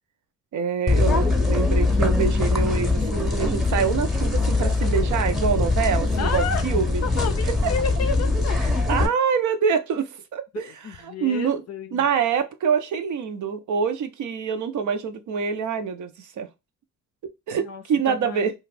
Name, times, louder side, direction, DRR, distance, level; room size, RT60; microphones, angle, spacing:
voice 1, 0.5-7.1 7.4-7.7 8.6-11.6 11.9-16.5 17.5-18.5, right 6 dB, 65° right, 0.6 m, -26 dB
sound 1, 0.9-9.1, left 3 dB, ahead, 0.8 m, -22 dB
voice 2, 6.2-6.7 7.0-8.6 10.5-12.1 17.7-18.4, left 6 dB, 50° left, 0.5 m, -31 dB
2.4 x 2.3 x 3.2 m
cardioid pair, 85°, 32 cm